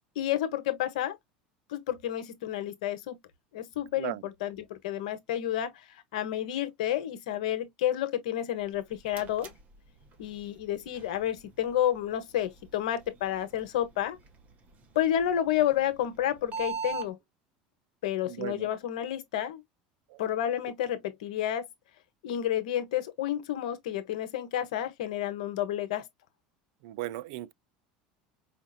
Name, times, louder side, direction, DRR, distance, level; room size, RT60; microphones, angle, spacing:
voice 1, 0.2-1.2 1.7-3.2 3.5-5.7 6.1-9.5 10.2-14.2 14.9-17.2 18.0-19.6 20.2-21.7 22.2-26.0, left 11 dB, 80° left, 1.0 m, -30 dB
sound 1, 8.6-17.1, right 6 dB, 40° right, 1.3 m, -44 dB
voice 2, 18.3-18.7 26.8-27.5, right 16 dB, 75° right, 0.3 m, -36 dB
5.0 x 2.4 x 2.5 m
supercardioid pair, 100°, 4 cm